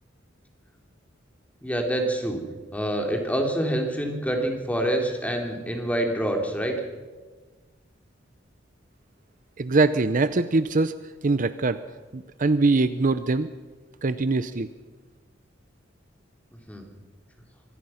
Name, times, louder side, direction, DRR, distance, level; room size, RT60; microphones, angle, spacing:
voice 1, 1.6-2.4 2.7-6.7 16.7-16.8, right 1 dB, 10° left, 3 dB, 3.1 m, -26 dB
voice 2, 9.6-10.9 11.2-11.8 12.1-13.5 14.0-14.7, right 3 dB, 45° right, 13 dB, 0.7 m, -22 dB
24.5 x 18.5 x 5.8 m, 1.3 s
head